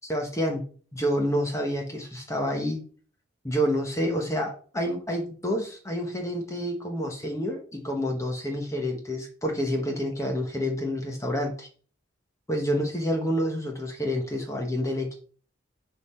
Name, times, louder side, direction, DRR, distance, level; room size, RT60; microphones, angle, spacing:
voice 1, 0.0-0.6 0.9-2.8 3.4-11.7 12.5-15.1, equal, 15° left, 1 dB, 1.2 m, -28 dB
10.5 x 3.8 x 4.5 m, 0.42 s
head